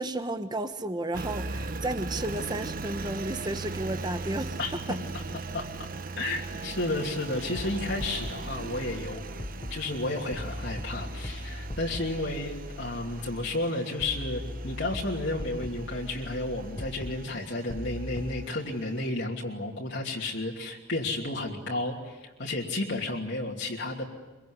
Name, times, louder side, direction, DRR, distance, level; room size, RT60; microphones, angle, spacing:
voice 1, 0.0-4.6 4.9-5.0, right 1 dB, 20° right, 8 dB, 1.3 m, -32 dB
Engine, 1.1-19.1, right 3 dB, 45° right, 0.9 m, -39 dB
voice 2, 5.5-5.9 6.2-9.2 9.7-24.0, left 2 dB, 65° left, -3 dB, 3.0 m, -32 dB
sound 1, 7.5-18.5, left 1 dB, 25° left, 0.8 m, -40 dB
24.5 x 24.0 x 9.7 m, 1.1 s
head